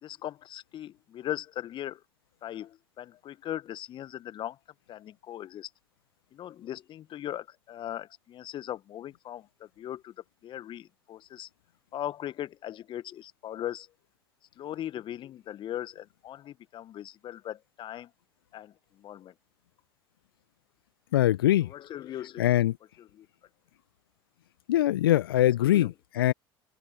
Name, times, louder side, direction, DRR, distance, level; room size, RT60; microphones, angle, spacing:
voice 1, 0.0-2.0 2.4-4.6 4.9-5.7 6.3-10.1 10.4-11.5 11.9-13.9 14.6-18.1 18.5-18.7 19.0-19.3 21.7-22.4 23.2-23.3 25.7-25.9, left 12 dB, 40° left, 1.5 m, -39 dB
voice 2, 21.1-21.7 22.4-22.8 24.7-26.3, left 13 dB, 70° left, 1.2 m, -23 dB
open air
figure-of-eight pair, 70°, 12 cm